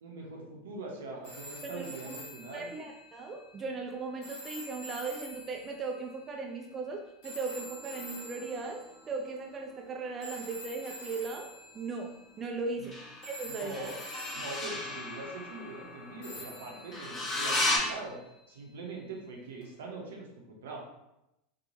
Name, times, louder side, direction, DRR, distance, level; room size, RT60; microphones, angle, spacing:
voice 1, 0.0-2.7 12.8-12.9 13.4-14.0 14.3-18.2 18.5-20.8, right 2 dB, 75° right, 0 dB, 0.7 m, -42 dB
sound 1, 1.2-9.4 10.2-12.9 13.2-15.3 16.2-18.5 19.6-19.7, equal, 55° left, 1.1 m, -48 dB
voice 2, 1.6-2.2 2.5-11.5 11.7-13.0 13.2-13.8, right 3 dB, 30° right, 2 dB, 0.3 m, -38 dB
sound 2, 7.5-10.5 12.8-17.8, left 1 dB, 25° left, 1.2 m, -36 dB
3.0 x 2.2 x 2.7 m, 0.88 s
hypercardioid pair, 85°, 0 cm